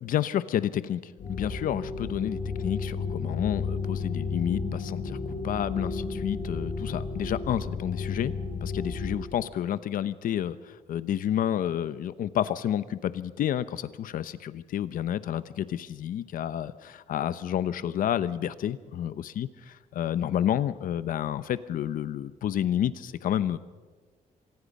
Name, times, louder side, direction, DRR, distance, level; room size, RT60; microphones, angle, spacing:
voice 1, 0.0-5.2 5.4-8.3 8.6-10.6 10.9-19.5 20.0-23.6, left 10 dB, 80° left, 14 dB, 0.9 m, -30 dB
sound 1, 1.2-9.2, left 4 dB, 55° left, 7.1 m, -33 dB
26.0 x 19.0 x 5.4 m, 1.4 s
wide cardioid pair, 170°, 14 cm